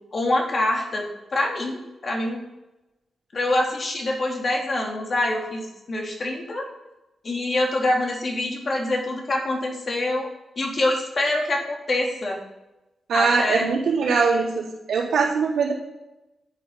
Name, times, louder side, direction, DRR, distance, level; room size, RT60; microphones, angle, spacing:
voice 1, 0.1-2.4 3.3-6.6 7.2-10.3 10.6-12.4 13.1-13.7, left 1 dB, 45° left, 0 dB, 3.2 m, -25 dB
voice 2, 13.1-15.8, right 5 dB, 90° right, -4 dB, 3.6 m, -22 dB
10.5 x 8.8 x 5.8 m, 0.99 s
cardioid pair, 90°, 0 cm